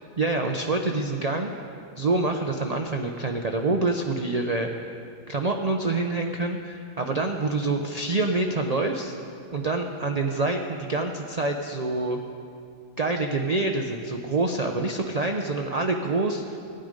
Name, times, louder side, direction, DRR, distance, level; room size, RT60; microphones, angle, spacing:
voice 1, 0.2-1.5 2.0-4.9 5.3-9.1 9.5-12.2 13.0-16.6, right 2 dB, 40° right, 3 dB, 0.5 m, -26 dB
17.0 x 9.2 x 5.2 m, 2.4 s
omnidirectional pair, 1.4 m